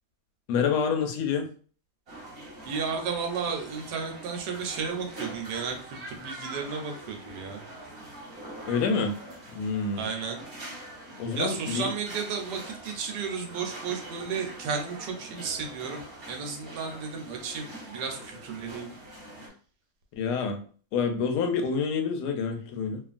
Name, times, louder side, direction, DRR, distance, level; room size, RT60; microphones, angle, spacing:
voice 1, 0.5-1.5 8.7-9.2 9.5-10.1 11.2-11.9 20.1-20.6 20.9-23.0, left 5 dB, 80° left, 4 dB, 1.1 m, -27 dB
sound 1, 2.1-19.5, right 1 dB, 35° right, 1.1 m, -44 dB
voice 2, 2.7-7.6 10.0-10.4 11.4-18.9, right 5 dB, 85° right, 3 dB, 1.3 m, -33 dB
2.8 x 2.5 x 2.4 m, 0.42 s
omnidirectional pair, 1.8 m